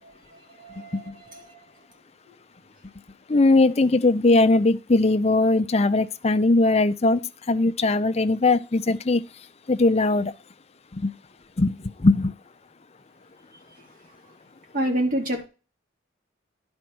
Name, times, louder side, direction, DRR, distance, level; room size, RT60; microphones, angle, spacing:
voice 1, 0.0-1.6 14.7-15.5, right 1 dB, 45° right, 2.9 m, -29 dB
voice 2, 3.3-7.2 7.5-9.2 9.7-10.3 10.9-11.1 11.6-12.3, left 2 dB, 35° left, 0.6 m, -20 dB
11.0 x 4.4 x 6.0 m
head